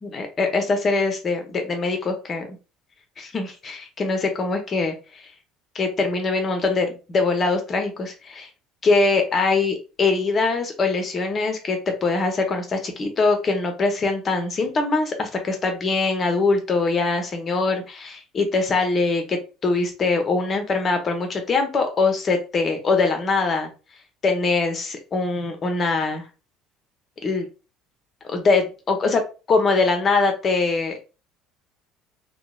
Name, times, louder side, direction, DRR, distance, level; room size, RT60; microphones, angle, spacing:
voice 1, 0.0-2.5 3.2-4.9 5.7-8.5 8.8-23.7 24.2-26.2 27.2-27.5 28.2-29.2 29.5-31.0, left 3 dB, 35° left, 5 dB, 0.7 m, -22 dB
2.8 x 2.3 x 2.3 m, 0.32 s
figure-of-eight pair, 60°, 0 cm